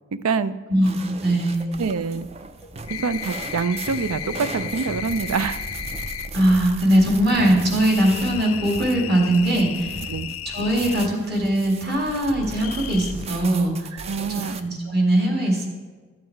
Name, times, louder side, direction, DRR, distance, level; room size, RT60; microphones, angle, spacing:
voice 1, 0.1-0.6 1.8-2.3 2.9-5.6 10.1-10.3 14.0-14.6, right 5 dB, 85° right, 15 dB, 0.5 m, -25 dB
voice 2, 0.7-1.7 6.3-10.0 10.5-13.9 14.3-15.7, right 1 dB, 45° right, 0 dB, 2.1 m, -21 dB
sound 1, 0.8-14.6, right 3 dB, 30° right, 0.4 m, -37 dB
sound 2, 1.6-1.7 2.4-2.7 3.0-3.5 3.9-5.2 5.6-6.2 6.5-6.8 7.4-10.4 10.8-12.1, equal, 10° right, 0.9 m, -42 dB
sound 3, 2.9-6.3 7.8-11.1 12.6-13.1, left 10 dB, 80° left, 0.5 m, -34 dB
13.0 x 7.4 x 4.6 m, 1.4 s
head